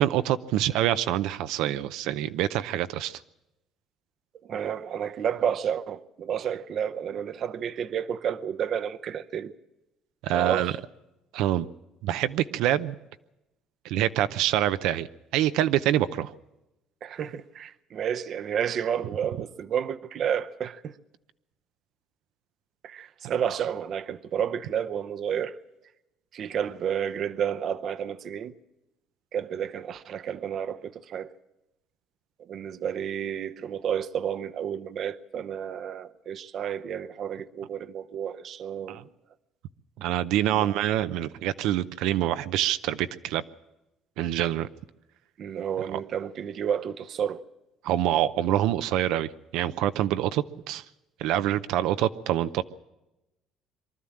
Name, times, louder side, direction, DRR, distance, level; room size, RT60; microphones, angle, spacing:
voice 1, 0.0-3.2 10.2-10.7 11.3-11.7 12.0-13.0 13.8-15.1 15.3-16.3 38.9-39.0 40.0-43.4 44.2-44.7 45.9-46.0 47.8-50.8 51.2-52.6, right 12 dB, 85° right, 0.6 m, -26 dB
voice 2, 4.5-9.5 10.3-10.8 17.0-20.9 22.8-25.6 26.3-28.5 29.3-31.3 32.5-39.0 40.5-40.7 45.4-47.4, right 8 dB, 45° right, 0.7 m, -31 dB
23.5 x 13.0 x 8.7 m
cardioid pair, 160°, 0 cm